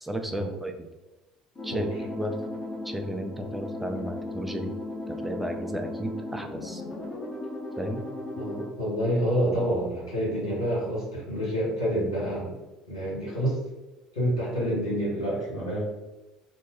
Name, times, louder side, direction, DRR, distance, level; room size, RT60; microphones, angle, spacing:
voice 1, 0.0-0.9 1.6-2.3 2.8-4.7 5.1-6.8 7.8-8.0, equal, 5° right, 4 dB, 0.4 m, -33 dB
sound 1, 1.5-8.7, left 2 dB, 30° left, 1.0 m, -36 dB
voice 2, 8.4-12.6 12.9-13.6 14.1-15.9, equal, 85° left, -9 dB, 1.2 m, -28 dB
2.8 x 2.1 x 3.0 m, 1.1 s
hypercardioid pair, 65°, 3 cm